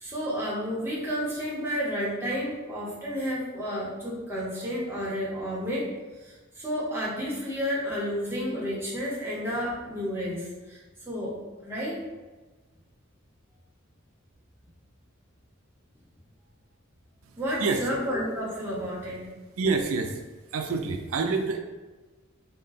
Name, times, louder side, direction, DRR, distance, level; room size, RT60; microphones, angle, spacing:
voice 1, 0.0-5.9 6.2-11.4 11.6-12.0 17.4-19.2, equal, 10° right, -6 dB, 1.0 m, -31 dB
voice 2, 19.6-20.2 20.5-21.6, right 4 dB, 85° right, 5 dB, 0.4 m, -27 dB
3.7 x 2.2 x 4.0 m, 1.2 s
head